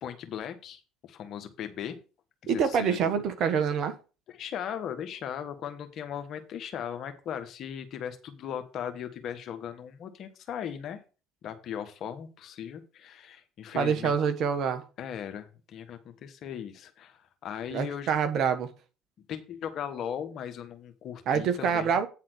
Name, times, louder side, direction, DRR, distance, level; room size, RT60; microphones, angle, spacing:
voice 1, 0.0-2.0 2.4-3.2 3.4-3.6 4.3-11.0 11.4-14.1 15.0-18.1 19.3-22.0, left 9 dB, 50° left, 1.4 m, -38 dB
voice 2, 2.5-4.0 13.7-14.8 17.7-18.7 21.3-22.1, right 7 dB, 50° right, 1.3 m, -26 dB
9.2 x 4.1 x 6.2 m
hypercardioid pair, 60°, 0 cm